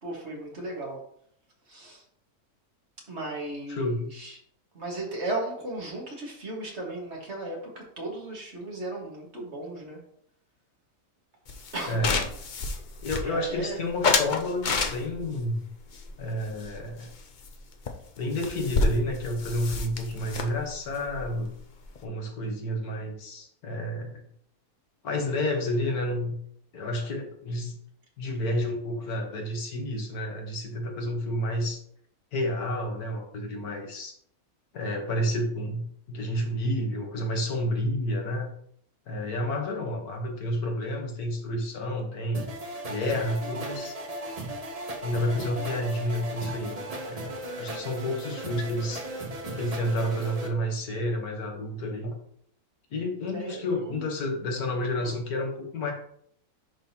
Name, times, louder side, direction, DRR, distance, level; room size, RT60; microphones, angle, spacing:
voice 1, 0.0-1.0 1.7-2.0 3.1-4.4 4.7-10.0 11.7-12.0 13.3-13.8 53.3-53.6 53.8-54.1 55.0-55.1, right 2 dB, 45° right, -2 dB, 1.9 m, -36 dB
voice 2, 3.7-4.1 11.9-12.2 13.0-15.7 16.2-17.1 18.2-21.5 22.0-24.2 25.0-26.4 26.7-27.8 28.2-31.8 32.3-34.1 34.7-35.8 36.1-38.5 39.1-42.4 42.8-44.0 45.0-49.0 49.6-52.1 52.9-55.9, left 1 dB, 75° left, 2 dB, 1.7 m, -30 dB
sound 1, 11.5-13.6 14.0-15.3 15.9-17.2 17.4-17.6 17.9-18.0 18.2-22.0, left 4 dB, 50° left, 0.5 m, -29 dB
sound 2, 42.3-50.5, right 1 dB, 30° right, 0.9 m, -36 dB
11.0 x 3.8 x 2.9 m, 0.66 s
omnidirectional pair, 1.6 m